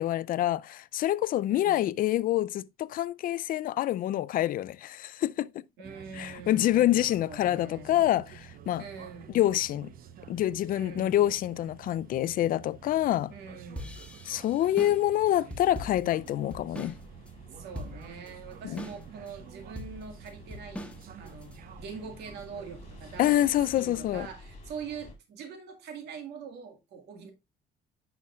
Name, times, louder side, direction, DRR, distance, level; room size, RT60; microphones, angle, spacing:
voice 1, 0.0-5.6 6.1-8.8 9.3-9.9 10.3-13.3 14.3-16.9 18.6-18.8 23.2-24.3, left 13 dB, 55° left, 0.4 m, -27 dB
voice 2, 1.5-1.9 5.8-7.9 8.8-9.4 10.7-11.2 13.3-14.1 17.5-20.9 21.2-27.3, right 5 dB, 80° right, 1.9 m, -44 dB
Ferry to Alcatraz, 5.8-24.3, right 8 dB, 60° right, 0.8 m, -50 dB
sound 1, 13.8-17.0 17.3-17.4 17.7-18.3 18.8-19.3 19.8-21.5, left 1 dB, 5° left, 1.3 m, -41 dB
sound 2, 16.2-25.1, left 2 dB, 40° left, 2.5 m, -52 dB
9.4 x 5.7 x 2.3 m
cardioid pair, 110°, 17 cm